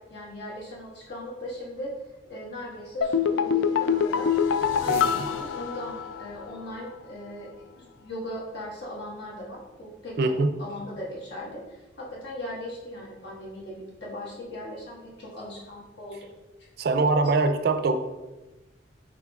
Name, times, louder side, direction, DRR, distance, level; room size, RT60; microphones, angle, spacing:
voice 1, 0.0-1.9 2.3-4.4 4.8-10.2 10.6-16.3, left 1 dB, 60° left, -5 dB, 1.4 m, -39 dB
sound 1, 3.0-6.4 6.7-6.8, left 7 dB, 75° left, 0.3 m, -25 dB
voice 2, 4.9-5.3 10.2-10.5 16.8-18.0, right 3 dB, 50° right, 7 dB, 0.3 m, -23 dB
5.8 x 3.7 x 2.3 m, 1.1 s
head